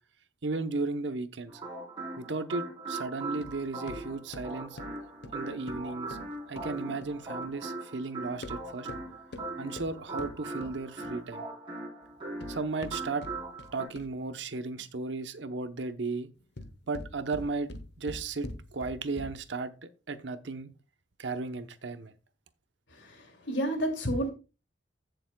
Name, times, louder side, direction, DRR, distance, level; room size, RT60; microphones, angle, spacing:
voice 1, 0.4-1.6 2.2-4.8 5.3-6.2 6.5-8.9 9.6-11.4 12.5-13.3 13.7-16.3 16.9-20.7 21.2-22.1, right 3 dB, 75° right, 0.9 m, -35 dB
sound 1, 1.5-13.9, right 2 dB, 30° right, 4.0 m, -40 dB
sound 2, 3.4-7.6 8.3-11.3 12.1-14.3 16.3-19.6, left 2 dB, 65° left, 1.0 m, -45 dB
voice 2, 22.9-24.3, right 1 dB, 90° left, 2.5 m, -31 dB
15.5 x 6.9 x 2.3 m
head